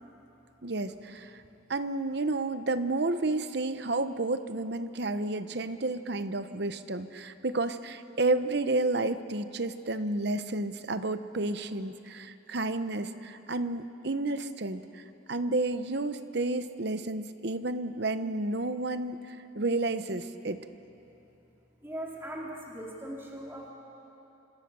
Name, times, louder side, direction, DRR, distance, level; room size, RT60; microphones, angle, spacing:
voice 1, 0.6-1.4 1.7-20.6, right 2 dB, 55° right, 11 dB, 0.9 m, -31 dB
voice 2, 21.8-23.7, right 1 dB, 10° right, -2 dB, 2.7 m, -39 dB
28.0 x 25.0 x 6.9 m, 3.0 s
head